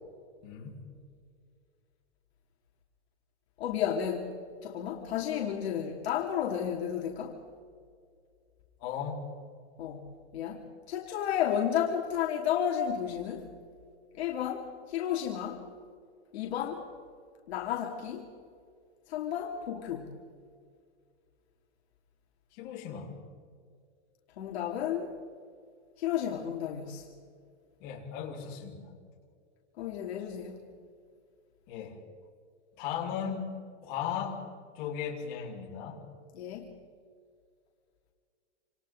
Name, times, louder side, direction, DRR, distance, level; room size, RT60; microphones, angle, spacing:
voice 1, 0.4-0.9 8.8-9.3 22.6-23.2 27.8-28.9 31.7-32.0 32.8-33.5 33.8-34.4 34.7-36.1, left 8 dB, 35° left, -2 dB, 4.5 m, -37 dB
voice 2, 3.6-4.3 4.6-7.4 9.8-10.1 10.3-13.5 14.1-15.6 16.3-16.8 17.5-18.3 19.1-20.1 24.4-25.1 26.0-27.0 29.8-30.6 36.3-36.7, left 9 dB, 65° left, -1 dB, 2.9 m, -32 dB
28.0 x 27.0 x 4.0 m, 2.2 s
supercardioid pair, 165°, 35 cm